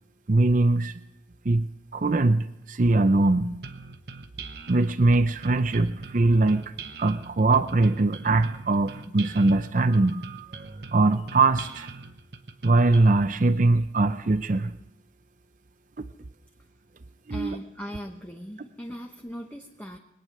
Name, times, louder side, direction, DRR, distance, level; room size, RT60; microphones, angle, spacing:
voice 1, 0.3-1.0 1.4-3.6 4.7-6.7 7.0-11.9 12.6-14.7 17.3-17.6, right 2 dB, 45° right, 10 dB, 0.6 m, -22 dB
sound 1, 3.6-13.2, right 4 dB, 60° right, 1.0 m, -42 dB
voice 2, 17.3-20.0, equal, 10° left, 1 dB, 1.0 m, -39 dB
22.0 x 9.3 x 6.5 m, 0.88 s
head